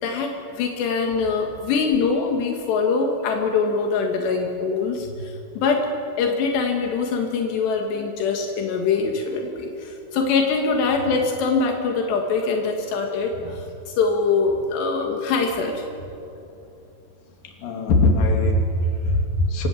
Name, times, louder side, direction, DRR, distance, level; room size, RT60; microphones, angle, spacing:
voice 1, 0.0-5.9 6.2-15.9, left 4 dB, 80° left, 2 dB, 3.9 m, -23 dB
voice 2, 17.4-19.7, left 1 dB, 60° left, 2 dB, 4.3 m, -21 dB
26.5 x 20.5 x 8.4 m, 2.7 s
omnidirectional pair, 4.8 m